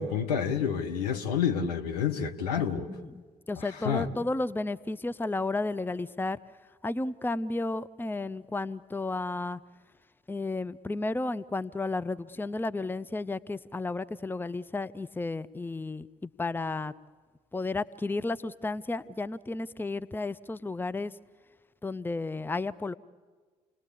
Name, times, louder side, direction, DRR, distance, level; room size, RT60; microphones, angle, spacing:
voice 1, 0.0-2.9 3.6-4.1, left 7 dB, 80° left, 4 dB, 1.2 m, -29 dB
voice 2, 2.6-6.4 6.8-9.6 10.3-16.9 17.5-21.1 21.8-22.9, left 2 dB, 10° left, 15 dB, 0.7 m, -33 dB
29.0 x 20.0 x 8.4 m, 1.5 s
figure-of-eight pair, 45°, 20 cm